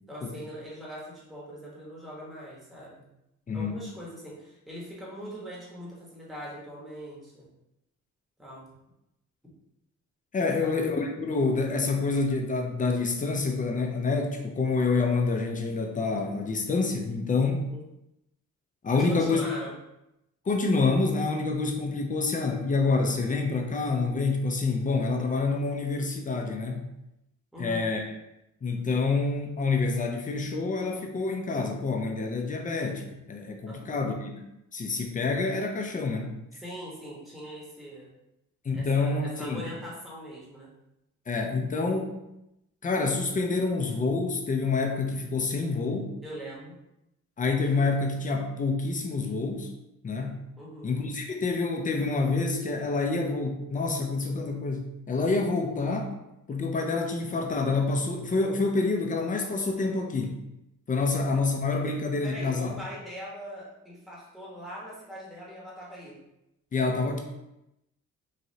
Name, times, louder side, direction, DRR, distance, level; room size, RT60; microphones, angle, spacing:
voice 1, 0.1-3.1 3.5-7.5 8.4-8.7 10.4-10.7 17.7-17.8 18.9-19.7 27.5-27.9 33.7-33.9 36.5-38.1 38.7-40.7 46.2-46.8 50.6-50.9 61.9-66.2, equal, ahead, -6 dB, 1.0 m, -41 dB
voice 2, 10.3-17.7 18.8-19.4 20.5-26.9 27.6-28.0 28.6-34.3 34.7-36.3 38.6-39.6 41.3-42.2 42.8-46.1 47.4-49.7 50.0-50.4 50.8-56.1 56.5-60.3 60.9-62.7 66.7-67.2, left 3 dB, 25° left, 3 dB, 0.5 m, -27 dB
3.1 x 2.6 x 2.7 m, 0.87 s
cardioid pair, 90°, 30 cm